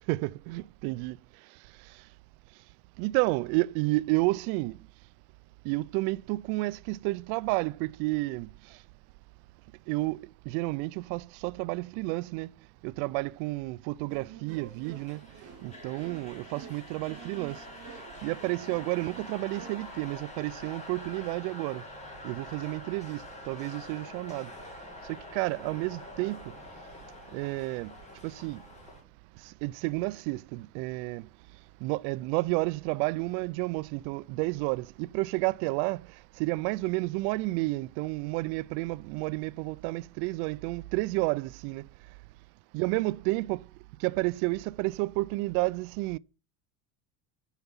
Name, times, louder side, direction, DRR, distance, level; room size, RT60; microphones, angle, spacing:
voice 1, 0.1-1.2 1.9-2.0 3.0-4.8 5.6-8.8 9.9-12.5 12.8-15.2 15.6-17.6 18.2-21.8 22.2-24.5 25.3-26.5 27.3-27.9 28.2-28.6 29.4-31.3 31.8-41.9 42.7-43.7 44.0-46.2, right 22 dB, 75° right, 0.5 m, -31 dB
sound 1, 14.1-20.1, right 8 dB, 40° right, 1.7 m, -49 dB
sound 2, 14.8-29.0, left 2 dB, 15° left, 2.3 m, -46 dB
8.0 x 5.8 x 7.1 m
cardioid pair, 160°, 39 cm